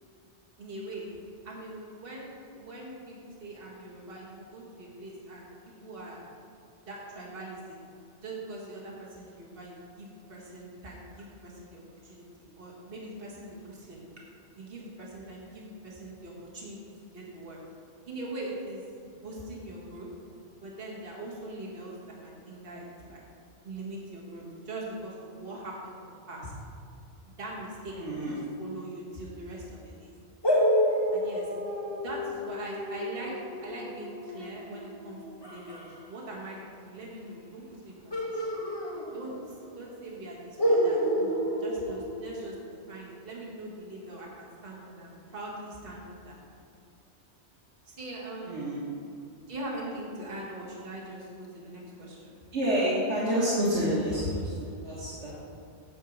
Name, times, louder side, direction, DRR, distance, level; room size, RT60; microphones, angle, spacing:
voice 1, 0.6-1.1 1.4-5.5 5.8-6.2 6.8-7.8 8.2-12.3 12.6-14.0 14.5-16.8 17.1-17.6 18.1-20.1 20.6-22.0 22.2-23.2 23.6-26.5 27.3-30.1 31.1-31.5 31.9-33.3 33.6-38.5 39.1-42.6 42.9-46.4 47.8-48.5 49.5-52.4, right 1 dB, 55° right, -4 dB, 1.7 m, -42 dB
voice 2, 27.9-28.3 48.4-48.8 52.5-55.3, equal, 80° right, -9 dB, 2.0 m, -28 dB
sound 1, 30.4-35.9 38.1-39.6 39.8-39.9 40.6-42.8, equal, 20° left, 1.5 m, -29 dB
8.7 x 4.6 x 7.2 m, 2.5 s
omnidirectional pair, 1.2 m